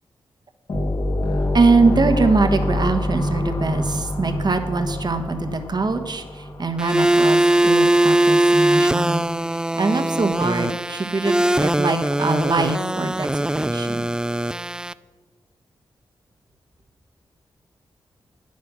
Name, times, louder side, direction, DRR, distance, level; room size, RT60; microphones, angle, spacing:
sound 1, 0.7-7.2, left 1 dB, 60° left, 2.1 m, -26 dB
voice 1, 1.5-9.3 9.8-14.1, right 3 dB, 50° right, 7 dB, 1.2 m, -22 dB
sound 2, 6.8-14.9, right 1 dB, 10° right, 0.4 m, -20 dB
9.2 x 8.5 x 6.2 m, 1.4 s
cardioid pair, 45°, 9 cm